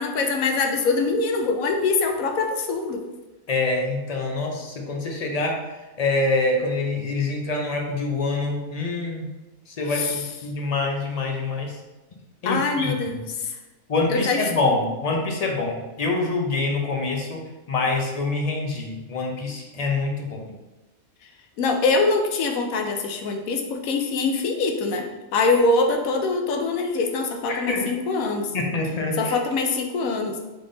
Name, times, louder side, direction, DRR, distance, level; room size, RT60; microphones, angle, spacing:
voice 1, 0.0-3.0 9.9-10.2 12.4-13.5 14.1-14.7 21.6-28.5 29.2-30.4, left 3 dB, 90° left, 4 dB, 1.1 m, -24 dB
voice 2, 3.5-5.6 6.0-9.3 9.7-11.8 12.4-13.2 13.9-17.4 17.7-20.4 27.5-27.9 28.5-29.4, left 3 dB, 50° left, 1 dB, 0.4 m, -25 dB
3.8 x 3.6 x 3.7 m, 1.1 s
omnidirectional pair, 1.4 m